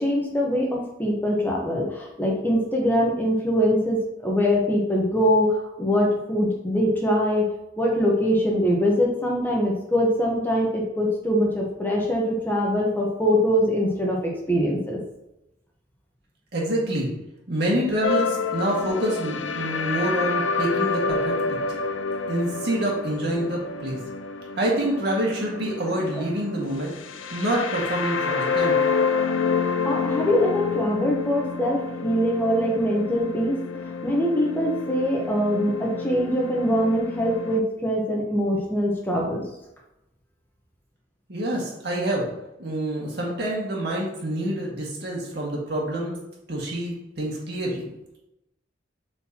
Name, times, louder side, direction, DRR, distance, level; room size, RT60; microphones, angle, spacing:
voice 1, 0.0-7.5 7.8-15.0 26.1-26.2 29.6-33.6 34.0-39.4, equal, 10° left, -2 dB, 1.1 m, -23 dB
voice 2, 16.5-17.1 17.5-21.8 22.3-24.0 24.6-26.9 27.3-28.8 41.3-46.1 46.5-47.8, right 1 dB, 60° right, -3 dB, 2.0 m, -27 dB
sound 1, 18.0-37.6, left 5 dB, 80° left, 0.5 m, -28 dB
7.9 x 4.4 x 2.9 m, 0.88 s
head